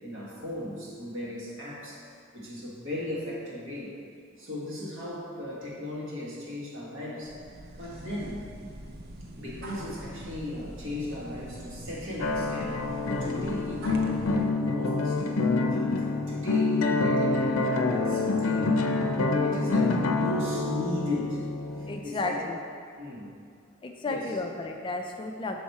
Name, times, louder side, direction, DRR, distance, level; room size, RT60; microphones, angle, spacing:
voice 1, 0.0-2.0 2.3-3.9 4.4-7.5 7.8-8.4 9.4-18.8 19.4-21.4 21.8-22.4 23.0-23.3 24.0-24.4, left 1 dB, 70° right, -5 dB, 1.5 m, -36 dB
sound 1, 7.2-14.5, right 1 dB, 50° right, 0.5 m, -44 dB
sound 2, 12.2-22.0, left 3 dB, 85° left, 0.5 m, -27 dB
voice 2, 21.8-22.6 23.8-25.6, left 2 dB, 25° left, 2 dB, 0.3 m, -33 dB
6.3 x 4.2 x 4.7 m, 2.2 s
head